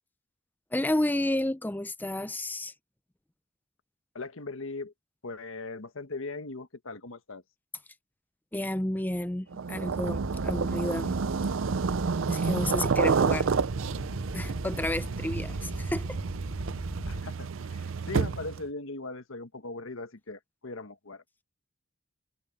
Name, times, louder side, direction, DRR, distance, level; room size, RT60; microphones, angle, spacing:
voice 1, 0.7-2.7 8.5-11.1 12.3-13.5 14.3-16.2, left 1 dB, 10° left, 0.6 m, -31 dB
voice 2, 4.1-4.9 5.2-7.4 17.1-21.2, left 3 dB, 85° left, 1.5 m, -39 dB
sound 1, 9.5-18.6, right 5 dB, 75° right, 0.5 m, -30 dB
sound 2, 9.8-17.2, equal, 55° right, 3.6 m, -38 dB
head